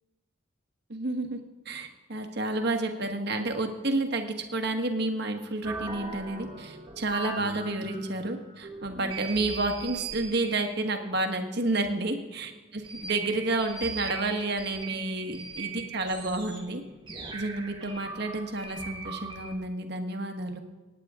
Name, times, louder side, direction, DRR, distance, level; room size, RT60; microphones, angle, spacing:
voice 1, 0.9-1.4 1.6-16.8 17.3-20.6, right 2 dB, 55° right, 5 dB, 1.4 m, -30 dB
sound 1, 5.6-19.5, right 4 dB, 25° right, 1.4 m, -40 dB
25.5 x 9.2 x 3.7 m, 1.2 s
head